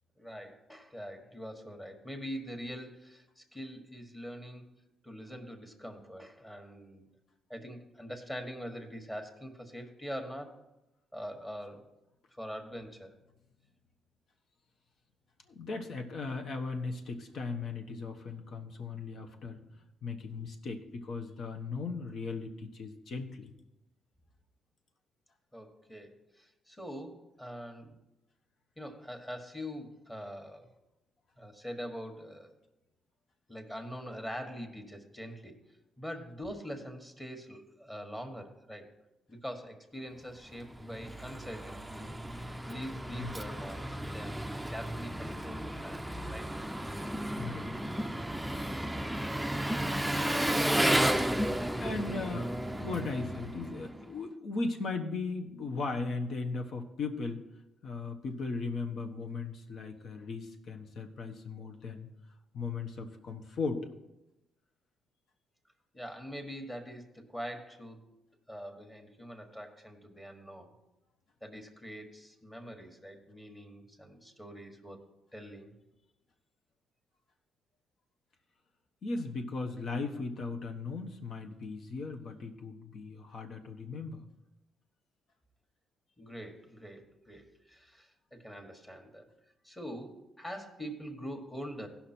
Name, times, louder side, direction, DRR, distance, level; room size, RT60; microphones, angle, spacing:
voice 1, 0.2-4.7 5.0-7.1 7.5-10.6 11.1-11.8 12.3-13.1 25.5-28.0 28.8-30.7 31.4-32.5 33.5-35.6 36.0-38.9 39.3-42.2 42.7-46.0 46.3-46.5 52.0-52.3 65.9-68.1 68.5-70.7 71.4-75.0 75.3-75.7 86.2-89.3 89.6-91.9, equal, 15° left, 5 dB, 1.5 m, -43 dB
voice 2, 15.5-19.6 20.0-23.5 43.2-43.4 47.4-47.8 51.7-57.4 57.8-62.1 62.5-63.9 79.0-84.2, left 4 dB, 60° left, 4 dB, 1.2 m, -37 dB
Engine, 40.5-54.1, right 1 dB, 5° right, 0.5 m, -33 dB
16.0 x 5.7 x 4.4 m, 0.95 s
cardioid pair, 90°, 0 cm